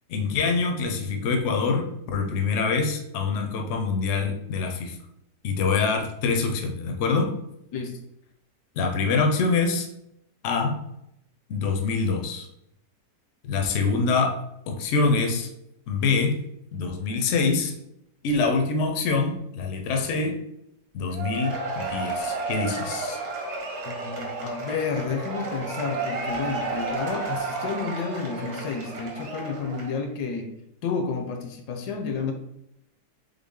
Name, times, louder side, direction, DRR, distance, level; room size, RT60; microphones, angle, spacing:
voice 1, 0.1-5.0 5.4-7.3 8.8-9.9 10.4-10.8 11.5-12.5 13.5-14.4 14.7-15.5 15.9-16.4 16.7-17.7 18.2-20.4 20.9-23.2, left 4 dB, 60° left, 3 dB, 0.8 m, -25 dB
Cheering / Applause / Crowd, 21.1-30.0, right 3 dB, 50° right, 1.1 m, -32 dB
voice 2, 23.9-30.5 30.8-32.3, left 5 dB, 75° left, 5 dB, 1.1 m, -31 dB
3.8 x 3.8 x 3.6 m, 0.80 s
omnidirectional pair, 1.8 m